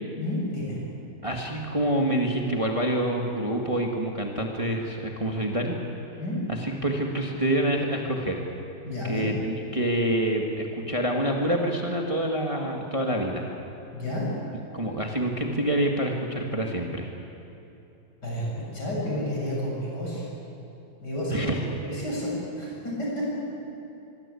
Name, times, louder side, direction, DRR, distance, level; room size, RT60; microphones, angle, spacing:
voice 1, 0.2-0.8 6.2-6.4 8.9-9.3 13.9-14.2 18.2-20.3 21.0-21.4 21.8-23.2, left 1 dB, 65° left, -4 dB, 8.1 m, -30 dB
voice 2, 1.2-5.8 6.5-8.4 9.0-13.5 14.7-17.1 21.3-21.6, right 1 dB, 20° right, 1 dB, 2.0 m, -27 dB
24.0 x 22.0 x 8.5 m, 2.9 s
omnidirectional pair, 2.0 m